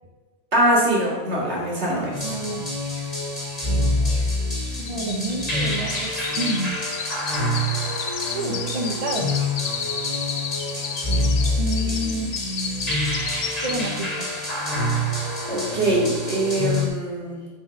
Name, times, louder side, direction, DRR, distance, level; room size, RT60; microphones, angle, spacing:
voice 1, 0.5-2.4 15.5-17.5, right 1 dB, 80° right, -4 dB, 2.6 m, -23 dB
sound 1, 2.1-16.9, left 1 dB, 35° left, 2.4 m, -26 dB
voice 2, 2.2-2.7 4.8-6.8 8.3-9.4 11.6-12.3 13.6-14.3, right 1 dB, 40° right, 2 dB, 1.0 m, -29 dB
sound 2, 2.3-2.4 2.6-14.1 14.5-14.8 15.2-15.3, left 7 dB, 60° left, 0.8 m, -33 dB
7.0 x 4.8 x 6.3 m, 1.3 s
omnidirectional pair, 1.1 m